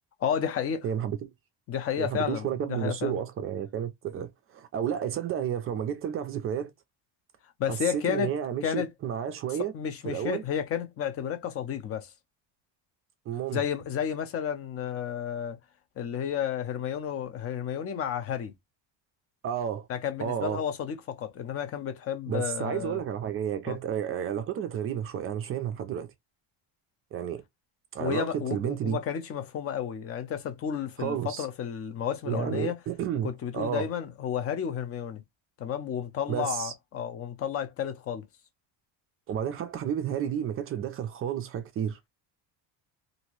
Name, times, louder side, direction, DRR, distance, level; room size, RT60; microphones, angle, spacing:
voice 1, 0.2-0.8 1.7-3.2 7.6-8.3 8.6-8.9 9.7-12.1 13.5-15.6 16.0-18.5 19.9-23.0 23.7-23.8 28.0-32.8 33.2-35.2 35.6-38.2, left 8 dB, 30° left, 0.6 m, -32 dB
voice 2, 0.8-1.3 2.0-6.7 7.7-9.7 10.0-10.4 13.3-13.6 19.4-19.9 20.2-20.6 22.3-26.1 27.1-27.4 27.9-29.0 31.0-31.5 32.2-33.9 36.3-36.7 39.3-42.0, right 9 dB, 30° right, 0.4 m, -31 dB
2.8 x 2.6 x 3.0 m
cardioid pair, 165°, 47 cm